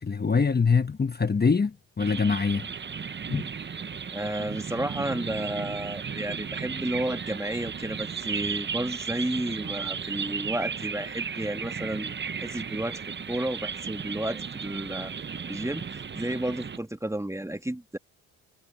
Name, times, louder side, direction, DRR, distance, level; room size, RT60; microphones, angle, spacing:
voice 1, 0.0-2.7 3.3-3.5, left 5 dB, 25° left, 1.3 m, -24 dB
sound 1, 2.0-16.8, right 6 dB, 30° right, 0.9 m, -35 dB
voice 2, 4.1-13.0 13.3-15.1 15.5-18.0, right 1 dB, 10° right, 2.1 m, -32 dB
supercardioid pair, 55°, 36 cm